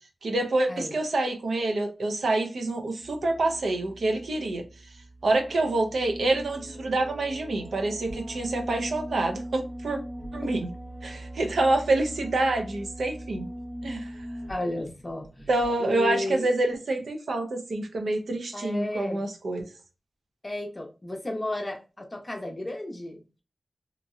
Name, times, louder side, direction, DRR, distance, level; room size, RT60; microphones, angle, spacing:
voice 1, 0.2-4.6 5.2-10.0 10.3-10.7 11.0-13.5 13.8-14.1 15.5-19.7, right 2 dB, 90° right, 0.6 m, -27 dB
sound 1, 3.0-15.8, right 1 dB, 20° right, 0.8 m, -40 dB
voice 2, 14.5-15.5 15.8-16.5 18.5-19.3 20.4-23.2, left 1 dB, 25° left, 0.7 m, -33 dB
2.9 x 2.6 x 2.4 m
wide cardioid pair, 120°, 0 cm